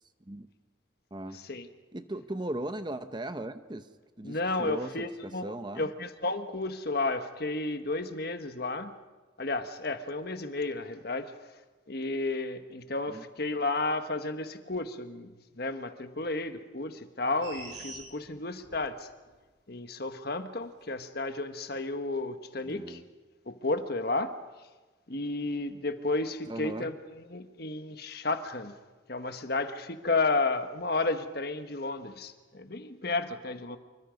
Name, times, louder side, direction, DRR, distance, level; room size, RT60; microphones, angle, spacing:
voice 1, 1.3-1.7 4.2-8.9 9.4-11.3 11.9-19.1 19.7-23.0 23.5-24.3 25.1-28.8 29.1-33.8, left 2 dB, 55° left, 8 dB, 1.4 m, -32 dB
voice 2, 1.9-3.9 4.2-5.9 13.1-13.3 22.6-23.0 26.5-26.9, right 1 dB, 25° right, 10 dB, 0.8 m, -38 dB
sound 1, 17.4-18.9 19.3-19.4, right 2 dB, 65° right, 7.7 m, -44 dB
26.5 x 24.5 x 5.3 m, 1.3 s
head